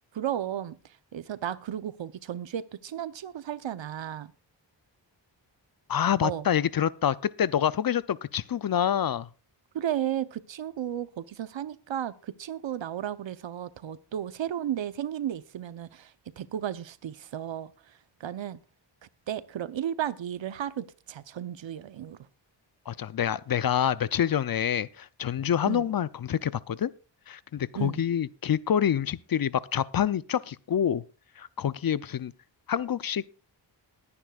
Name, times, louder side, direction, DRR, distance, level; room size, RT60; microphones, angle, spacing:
voice 1, 0.1-0.8 1.1-4.3 6.2-6.5 9.7-17.7 18.2-18.6 19.3-22.2 25.7-25.9 27.7-28.0, right 10 dB, 80° right, 0.9 m, -34 dB
voice 2, 5.9-9.3 22.9-26.9 27.3-31.0 31.4-32.3 32.7-33.2, left 9 dB, 50° left, 0.5 m, -27 dB
21.5 x 9.8 x 2.4 m
wide cardioid pair, 85°, 45 cm